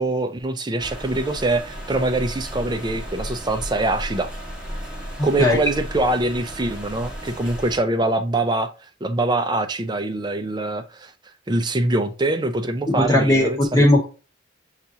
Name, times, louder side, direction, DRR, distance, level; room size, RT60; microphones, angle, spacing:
voice 1, 0.0-4.3 5.2-11.1 11.5-13.9, right 2 dB, 20° right, 0.4 m, -24 dB
sound 1, 0.8-7.8, equal, 5° right, 0.9 m, -34 dB
voice 2, 12.9-14.1, left 1 dB, 15° left, 0.8 m, -17 dB
6.8 x 2.4 x 2.7 m
head